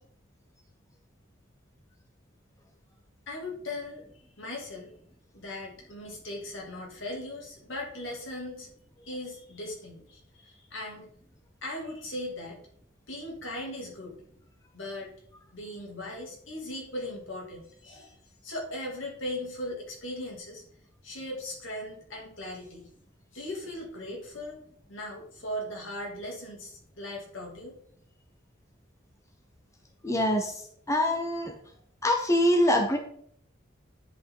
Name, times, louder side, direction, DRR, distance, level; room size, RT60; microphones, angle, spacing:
voice 1, 3.3-4.0 4.4-4.9 5.3-8.7 9.0-11.1 11.6-12.6 13.1-14.2 14.7-15.1 15.5-18.2 18.4-20.6 21.0-22.9 23.3-24.6 24.9-27.8, left 1 dB, 70° left, -1 dB, 2.6 m, -38 dB
voice 2, 30.0-31.5 32.0-33.0, left 1 dB, 15° left, 2 dB, 0.8 m, -25 dB
9.8 x 5.4 x 3.8 m, 0.65 s
head